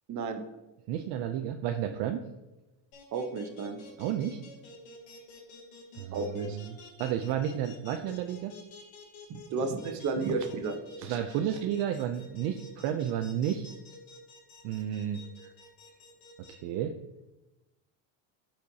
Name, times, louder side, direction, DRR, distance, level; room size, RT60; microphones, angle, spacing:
voice 1, 0.1-0.4 3.1-3.8 6.1-6.6 9.3-11.2, right 4 dB, 35° right, 6 dB, 0.9 m, -33 dB
voice 2, 0.9-2.2 4.0-4.4 5.9-8.5 11.0-13.7 14.6-15.2 16.5-17.0, right 10 dB, 60° right, 6 dB, 0.6 m, -32 dB
sound 1, 2.9-16.5, left 3 dB, 70° left, 2.0 m, -50 dB
13.0 x 4.5 x 2.8 m, 1.0 s
cardioid pair, 150°, 48 cm